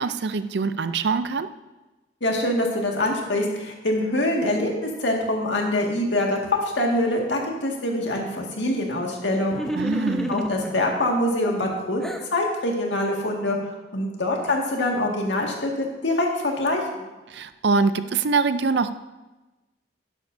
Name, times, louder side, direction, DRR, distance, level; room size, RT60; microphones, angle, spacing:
voice 1, 0.0-1.5 9.7-10.3 17.3-18.9, right 4 dB, 70° right, 12 dB, 0.5 m, -24 dB
voice 2, 2.2-9.6 10.3-13.6 13.9-17.1, left 1 dB, 85° left, 0 dB, 1.9 m, -24 dB
sound 1, 9.5-10.8 11.4-12.3, right 1 dB, 5° left, 0.7 m, -30 dB
11.5 x 10.5 x 2.7 m, 1.1 s
head